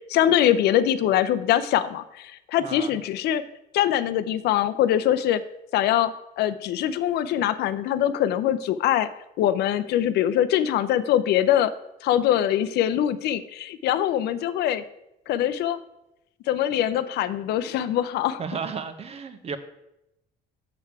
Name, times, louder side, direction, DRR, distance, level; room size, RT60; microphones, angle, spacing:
voice 1, 0.1-3.4 3.7-5.4 5.7-9.1 9.4-11.7 12.0-14.8 15.3-15.8 16.5-18.4, left 11 dB, 75° left, 12 dB, 0.6 m, -23 dB
voice 2, 2.6-3.0 18.4-19.6, right 6 dB, 35° right, 10 dB, 0.8 m, -33 dB
6.9 x 6.7 x 4.7 m, 0.88 s
cardioid pair, 110°, 17 cm